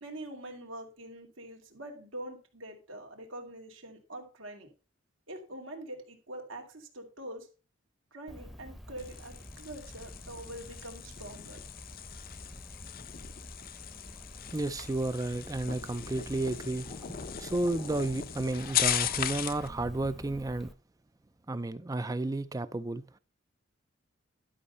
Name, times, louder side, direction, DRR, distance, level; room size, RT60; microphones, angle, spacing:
voice 1, 0.0-4.7 5.3-7.5 8.1-11.6, right 1 dB, 80° right, 2.4 m, -44 dB
Cricket, 8.3-20.7, equal, ahead, 0.8 m, -48 dB
sound 1, 9.0-19.7, left 11 dB, 45° left, 0.6 m, -37 dB
voice 2, 14.5-20.7 21.5-23.2, right 2 dB, 20° right, 0.4 m, -32 dB
11.5 x 5.3 x 5.5 m
head